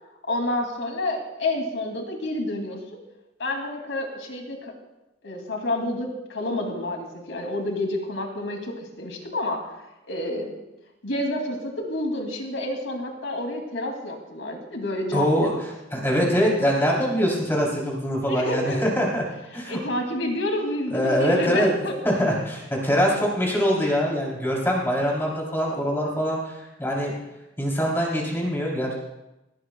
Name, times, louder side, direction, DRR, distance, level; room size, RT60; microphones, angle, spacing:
voice 1, 0.3-3.0 3.4-4.7 5.2-9.7 10.1-10.6 11.0-15.6 18.3-18.9 19.5-21.9, left 1 dB, 90° left, 2 dB, 2.7 m, -29 dB
voice 2, 15.1-15.5 15.9-19.2 19.5-19.8 20.9-21.8 22.0-26.5 26.8-27.1 27.6-28.9, equal, 15° left, -3 dB, 3.4 m, -23 dB
18.5 x 15.0 x 2.3 m, 0.96 s
head